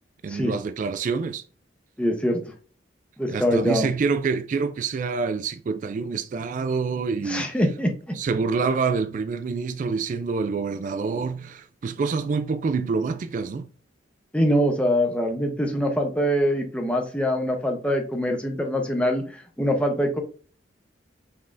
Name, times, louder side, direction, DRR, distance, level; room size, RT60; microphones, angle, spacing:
voice 1, 0.2-1.4 3.3-7.5 8.1-13.7, right 4 dB, 45° right, 0.3 m, -26 dB
voice 2, 2.0-2.4 3.2-3.9 7.3-7.9 14.3-20.2, equal, 5° left, 0.7 m, -23 dB
5.3 x 3.5 x 2.5 m
head